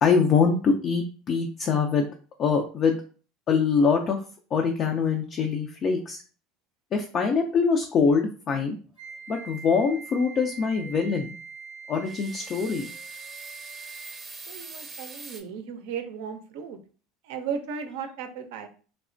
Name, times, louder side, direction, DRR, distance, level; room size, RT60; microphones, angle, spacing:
voice 1, 0.0-2.1 2.4-3.0 3.5-4.2 4.5-6.2 6.9-8.8 9.3-11.3 11.9-12.9, left 5 dB, 45° left, 3 dB, 0.4 m, -24 dB
Wind instrument woodwind instrument, 9.0-14.3, right 5 dB, 70° left, 1.1 m, -43 dB
sound 1, 12.0-15.4, right 3 dB, 25° right, 0.7 m, -43 dB
voice 2, 14.5-16.8 17.2-18.7, right 6 dB, 70° right, 7 dB, 0.4 m, -35 dB
3.2 x 2.0 x 2.5 m, 0.39 s
hypercardioid pair, 85°, 0 cm